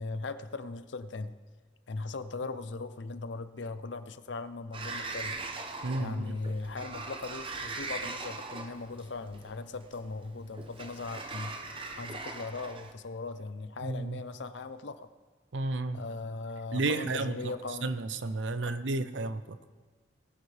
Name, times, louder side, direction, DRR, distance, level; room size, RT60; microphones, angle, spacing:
voice 1, 0.0-1.3 1.9-5.4 6.0-11.6 12.0-15.1 15.9-17.9 18.6-18.8, left 3 dB, 75° left, 0.7 m, -39 dB
Sliding door, 4.7-12.9, right 3 dB, 30° right, 0.8 m, -40 dB
voice 2, 5.8-6.4 13.8-14.2 15.5-16.0 16.7-17.5 17.8-19.6, right 2 dB, 80° right, 0.6 m, -32 dB
19.5 x 10.0 x 3.4 m
head